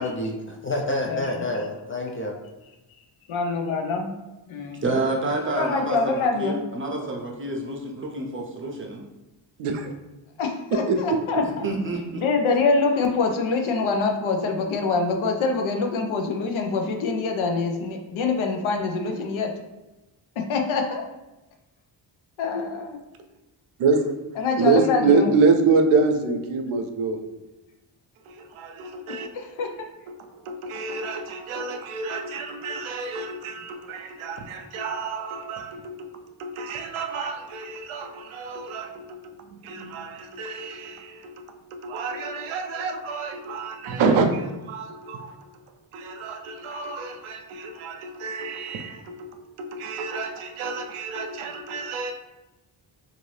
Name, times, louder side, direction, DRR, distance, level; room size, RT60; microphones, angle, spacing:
voice 1, 0.0-2.4, left 1 dB, 30° left, 0 dB, 0.3 m, -28 dB
voice 2, 3.3-4.1 4.5-4.8 5.6-6.6 10.4-11.4 12.2-19.5 20.5-21.0 22.4-23.0 24.4-25.3 29.3-29.9, left 4 dB, 75° left, 3 dB, 0.6 m, -25 dB
voice 3, 4.8-9.0 11.4-12.2, right 2 dB, 25° right, 0 dB, 0.6 m, -29 dB
voice 4, 9.6-9.9 10.7-11.0 23.8-24.1 24.6-27.2 28.3-29.3 30.1-36.1 36.4-45.4 45.9-49.3 49.6-52.1, right 4 dB, 85° right, 5 dB, 0.5 m, -27 dB
2.6 x 2.6 x 3.1 m, 1.0 s
cardioid pair, 80°, 49 cm